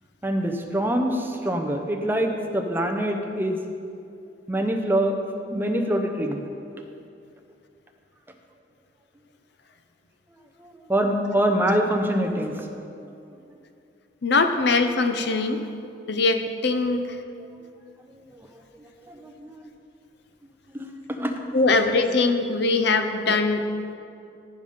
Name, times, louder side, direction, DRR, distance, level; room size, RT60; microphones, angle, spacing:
voice 1, 0.2-3.6 4.5-5.2 5.5-6.4 10.6-12.7 13.0-13.1 18.4-18.5 18.7-19.6 20.7-21.4 23.3-23.4, right 1 dB, 10° right, 3 dB, 0.7 m, -25 dB
voice 2, 14.2-15.6 16.1-17.1 21.5-23.7, left 3 dB, 60° left, 7 dB, 0.7 m, -22 dB
14.0 x 5.4 x 5.1 m, 2.6 s
head